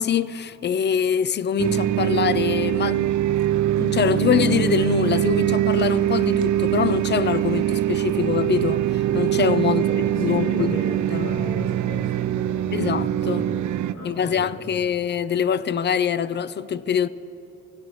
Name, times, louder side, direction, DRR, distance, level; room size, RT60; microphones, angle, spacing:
voice 1, 0.0-3.2 3.8-9.8 10.2-10.8 11.1-11.3 12.7-13.4 14.0-17.1, left 8 dB, 35° left, 0.4 m, -24 dB
sound 1, 1.6-13.9, right 12 dB, 65° right, 0.4 m, -23 dB
voice 2, 9.6-13.5 13.9-14.7, equal, 55° left, 3.7 m, -35 dB
17.5 x 14.5 x 3.1 m
cardioid pair, 75°, 31 cm